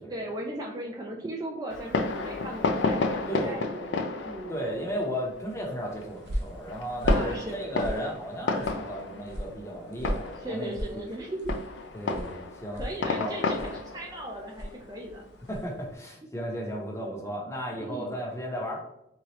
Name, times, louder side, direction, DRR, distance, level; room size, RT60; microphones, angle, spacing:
voice 1, 0.1-4.6 7.1-7.6 10.4-11.6 12.8-13.6 13.9-15.2 17.8-18.1, right 1 dB, 20° right, -1 dB, 0.4 m, -37 dB
Fireworks, 1.7-15.9, left 3 dB, 75° left, 0.4 m, -32 dB
voice 2, 4.5-11.0 11.9-13.7 15.5-18.8, equal, 15° left, 0 dB, 0.7 m, -35 dB
sound 1, 5.7-15.8, equal, 60° right, 0.7 m, -37 dB
3.6 x 3.1 x 2.9 m, 0.86 s
head